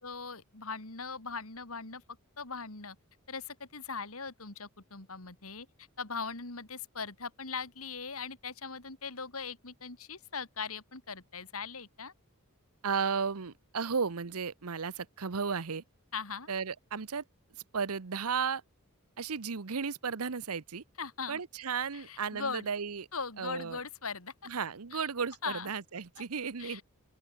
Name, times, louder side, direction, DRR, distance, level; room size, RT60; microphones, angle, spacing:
voice 1, 0.0-2.0 2.4-3.0 3.3-12.1 16.1-16.5 21.0-21.4 21.9-22.7 23.1-24.3 24.9-25.1 25.4-25.7 26.2-26.3 26.6-26.8, left 5 dB, 70° left, 3.8 m, -40 dB
voice 2, 12.8-15.8 16.5-17.2 17.7-18.6 19.2-20.8 21.3-23.1 23.4-23.8 24.5-26.8, right 5 dB, 85° right, 0.9 m, -34 dB
open air
head